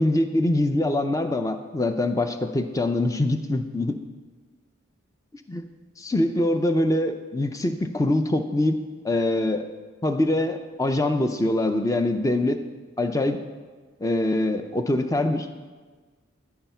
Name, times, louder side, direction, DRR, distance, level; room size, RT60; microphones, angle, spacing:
voice 1, 0.0-4.0 5.5-5.6 6.0-8.8 9.0-9.7 10.0-12.6 13.0-13.4 14.0-15.7, left 1 dB, 15° left, 8 dB, 0.4 m, -24 dB
13.0 x 4.8 x 5.7 m, 1.4 s
head